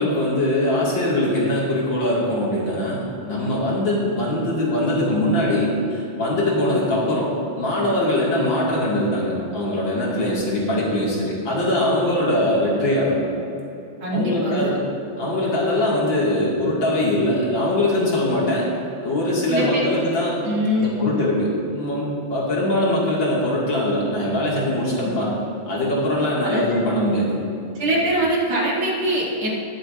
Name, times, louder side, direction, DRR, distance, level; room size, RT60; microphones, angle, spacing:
voice 1, 0.0-7.3 7.6-13.1 14.1-14.8 15.2-18.7 19.0-20.4 20.8-25.4 25.7-27.4, left 1 dB, 65° left, -5 dB, 3.0 m, -22 dB
voice 2, 14.0-14.7 19.5-19.9 20.4-21.1 25.0-25.2 26.4-26.8 27.8-29.5, equal, 70° right, -8 dB, 3.5 m, -23 dB
20.0 x 7.7 x 2.7 m, 2.9 s
omnidirectional pair, 2.3 m